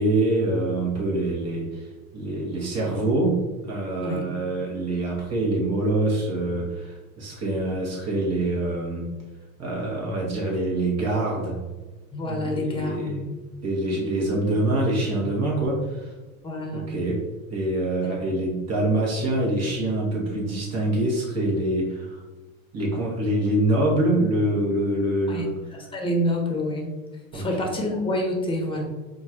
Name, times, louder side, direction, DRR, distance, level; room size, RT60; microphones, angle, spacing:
voice 1, 0.0-1.9 2.1-9.1 9.6-11.7 12.3-13.2 13.6-16.1 16.7-22.2 22.7-25.6 27.3-27.5, right 1 dB, 40° right, -2 dB, 1.5 m, -25 dB
voice 2, 12.1-13.2 16.4-16.9 18.1-18.2 25.3-25.5 25.9-26.9 27.3-28.8, left 1 dB, 10° left, 1 dB, 1.0 m, -27 dB
4.5 x 2.5 x 2.9 m, 1.2 s
hypercardioid pair, 80°, 42 cm